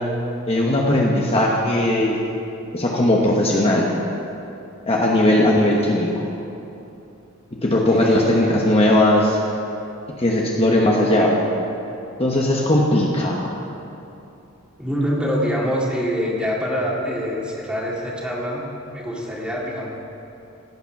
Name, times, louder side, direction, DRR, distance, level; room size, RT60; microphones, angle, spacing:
voice 1, 0.5-2.2 2.7-3.9 4.9-6.3 7.6-9.4 10.2-11.3 12.2-13.5, left 1 dB, 30° left, -2 dB, 1.1 m, -18 dB
voice 2, 5.6-6.0 7.7-8.6 14.8-19.9, equal, 5° right, -4 dB, 2.1 m, -25 dB
16.5 x 8.9 x 5.9 m, 2.8 s
head